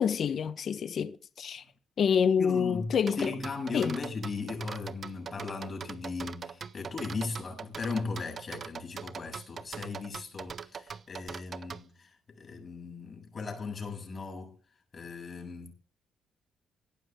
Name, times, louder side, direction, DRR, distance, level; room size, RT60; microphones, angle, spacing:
voice 1, 0.0-1.6 2.0-3.3 3.7-3.9, left 7 dB, 55° left, 1.1 m, -27 dB
voice 2, 2.4-14.6 14.9-15.7, left 4 dB, 40° left, 7.6 m, -37 dB
sound 1, 3.1-11.8, right 6 dB, 45° right, 0.9 m, -41 dB
17.5 x 12.0 x 3.7 m
cardioid pair, 90°, 0 cm